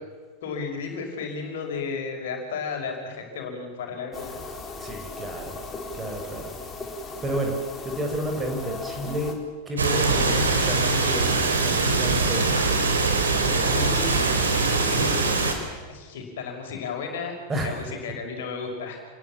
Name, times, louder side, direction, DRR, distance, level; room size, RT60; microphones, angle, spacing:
voice 1, 0.4-4.4 13.6-14.2 14.5-15.3 15.9-17.3 17.6-19.0, left 5 dB, 55° left, 3 dB, 5.7 m, -33 dB
sound 1, 4.1-9.3, left 3 dB, 20° left, 4.3 m, -37 dB
voice 2, 4.8-5.6 6.0-6.5 7.2-7.6 7.8-9.4 9.7-12.5 13.2-13.8 17.5-17.8, right 1 dB, 15° right, 3 dB, 5.8 m, -31 dB
sound 2, 9.8-15.5, right 3 dB, 70° right, 4.2 m, -22 dB
29.0 x 21.5 x 7.4 m, 1.5 s
figure-of-eight pair, 90°, 0 cm